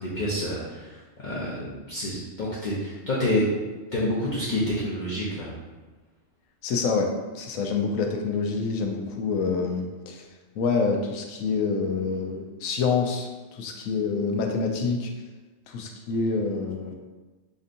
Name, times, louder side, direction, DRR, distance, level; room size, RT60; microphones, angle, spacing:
voice 1, 0.0-3.5 3.9-5.5, left 1 dB, 45° left, -7 dB, 0.7 m, -28 dB
voice 2, 6.6-7.1 7.3-10.2 10.6-15.1 15.7-17.0, left 4 dB, 90° left, 3 dB, 1.0 m, -27 dB
5.2 x 2.7 x 2.5 m, 1.2 s
omnidirectional pair, 1.4 m